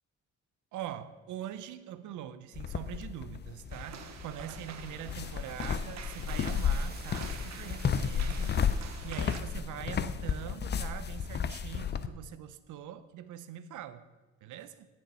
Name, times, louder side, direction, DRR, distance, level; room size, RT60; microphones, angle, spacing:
voice 1, 0.7-14.1 14.4-14.9, right 10 dB, 80° right, 13 dB, 0.7 m, -43 dB
sound 1, 2.5-12.1, left 7 dB, 35° left, 0.5 m, -33 dB
sound 2, 3.7-9.4, right 7 dB, 65° right, 1.0 m, -47 dB
sound 3, 5.9-8.8, right 4 dB, 35° right, 1.4 m, -52 dB
16.0 x 6.6 x 4.2 m, 1.2 s
cardioid pair, 90°, 30 cm